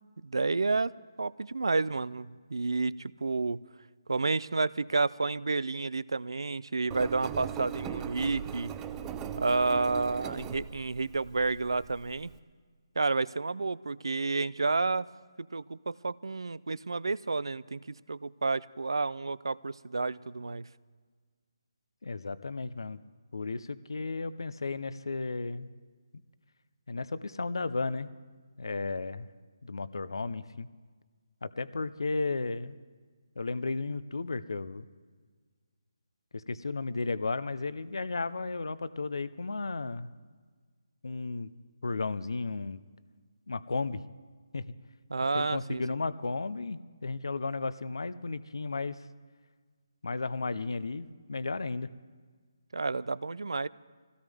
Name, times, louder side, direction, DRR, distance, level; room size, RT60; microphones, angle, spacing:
voice 1, 0.2-0.9 1.2-3.6 4.1-8.7 9.4-12.3 13.0-15.1 15.4-20.7 45.1-45.8 52.7-53.7, right 3 dB, 90° right, 20 dB, 0.4 m, -30 dB
Engine, 6.9-12.4, right 8 dB, 10° right, 0.5 m, -39 dB
voice 2, 22.0-23.0 23.3-25.7 26.9-28.1 28.6-29.3 29.6-30.7 31.4-32.8 33.4-34.8 36.3-40.1 41.0-41.5 41.8-42.8 43.5-44.0 44.5-44.6 45.3-49.0 50.0-51.9, left 3 dB, 80° left, 15 dB, 0.7 m, -34 dB
22.5 x 17.0 x 3.5 m, 1.5 s
hypercardioid pair, 160°, 2 cm